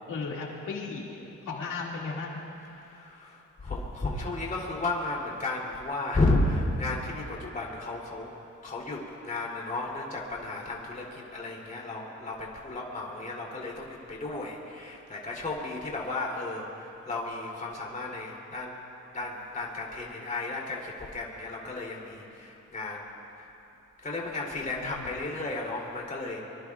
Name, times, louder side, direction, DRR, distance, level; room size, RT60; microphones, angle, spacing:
voice 1, 0.1-2.4 24.6-25.1, left 4 dB, 85° left, -3 dB, 2.2 m, -36 dB
voice 2, 2.6-8.3 8.6-18.8 19.1-23.5 24.0-26.4, left 2 dB, 25° left, -3 dB, 3.0 m, -33 dB
24.5 x 24.5 x 2.4 m, 2.9 s
wide cardioid pair, 140°, 30 cm